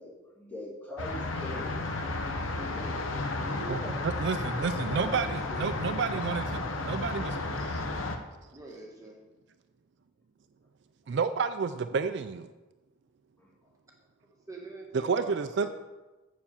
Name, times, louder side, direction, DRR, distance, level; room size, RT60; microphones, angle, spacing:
voice 1, 0.0-1.8 2.6-4.0 13.4-13.5, left 1 dB, 10° left, -5 dB, 2.3 m, -42 dB
sound 1, 1.0-8.2, left 2 dB, 70° left, 1.0 m, -33 dB
voice 2, 3.7-7.4 7.7-7.8 11.1-12.5 14.9-15.7, right 5 dB, 55° right, 10 dB, 0.3 m, -30 dB
voice 3, 4.9-5.7 8.5-9.1 14.5-15.7, right 2 dB, 15° right, -1 dB, 1.3 m, -44 dB
7.2 x 6.4 x 7.1 m, 1.1 s
head